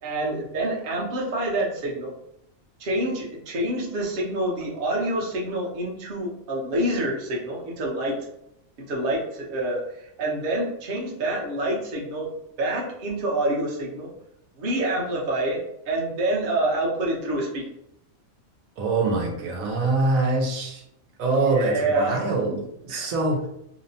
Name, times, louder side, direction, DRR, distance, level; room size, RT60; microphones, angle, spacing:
voice 1, 0.0-2.1 2.8-8.2 8.9-12.3 12.6-14.1 14.6-17.7 21.5-22.2 22.9-23.1, right 1 dB, 50° right, -3 dB, 0.8 m, -27 dB
voice 2, 18.8-20.8 21.2-23.5, right 3 dB, 85° right, 0 dB, 1.1 m, -24 dB
2.8 x 2.0 x 2.7 m, 0.78 s
omnidirectional pair, 1.4 m